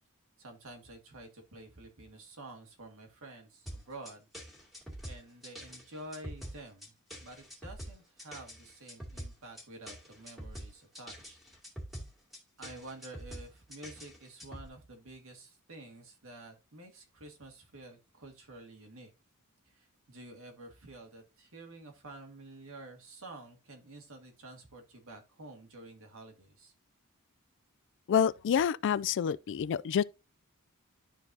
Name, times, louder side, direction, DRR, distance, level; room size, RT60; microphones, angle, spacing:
voice 1, 0.4-4.3 5.0-6.9 7.2-11.4 12.6-19.1 19.7-26.7, right 2 dB, 65° right, 1.9 m, -50 dB
sound 1, 3.7-14.7, equal, ahead, 2.5 m, -45 dB
voice 2, 28.1-30.0, left 8 dB, 55° left, 0.3 m, -28 dB
11.5 x 4.6 x 2.7 m
head